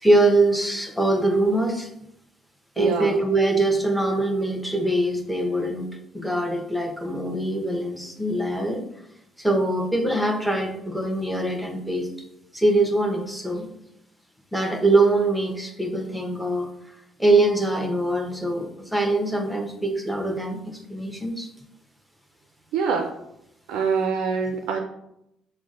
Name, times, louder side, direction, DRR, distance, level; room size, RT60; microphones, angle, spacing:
voice 1, 0.0-1.9 2.8-5.9 6.1-8.8 9.4-12.1 12.5-13.7 14.5-16.7 17.2-21.5, right 2 dB, ahead, 3 dB, 0.8 m, -23 dB
voice 2, 2.8-3.2 22.7-23.1 23.7-24.8, right 5 dB, 75° right, 4 dB, 0.3 m, -24 dB
5.9 x 2.1 x 2.5 m, 0.81 s
hypercardioid pair, 55°, 0 cm